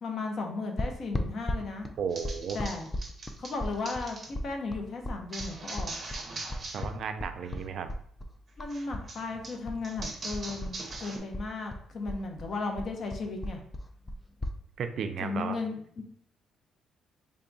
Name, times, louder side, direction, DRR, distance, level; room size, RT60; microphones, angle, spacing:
voice 1, 0.0-1.9 2.5-2.9 3.4-5.9 8.6-13.6 15.2-16.0, left 3 dB, 45° left, 3 dB, 0.7 m, -35 dB
sound 1, 0.8-9.1 9.3-11.0 11.3-14.6, left 1 dB, 15° left, 0.3 m, -36 dB
voice 2, 2.0-2.6 6.7-7.9 14.8-15.6, right 6 dB, 55° right, 8 dB, 0.4 m, -34 dB
sound 2, 2.1-4.3 5.3-6.9 7.2-7.6 8.7-11.2, right 2 dB, 35° right, 0.7 m, -41 dB
3.4 x 2.3 x 3.9 m, 0.63 s
cardioid pair, 135°, 0 cm